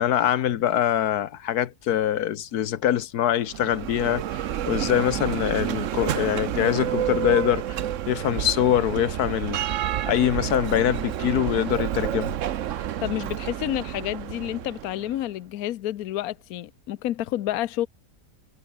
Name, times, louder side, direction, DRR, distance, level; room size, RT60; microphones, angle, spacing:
voice 1, 0.0-9.6 10.1-12.3, left 11 dB, 90° left, 1.5 m, -24 dB
Bell, 3.4-15.2, right 11 dB, 60° right, 1.0 m, -29 dB
voice 2, 12.8-17.9, left 13 dB, 75° left, 1.2 m, -29 dB
omnidirectional pair, 1.6 m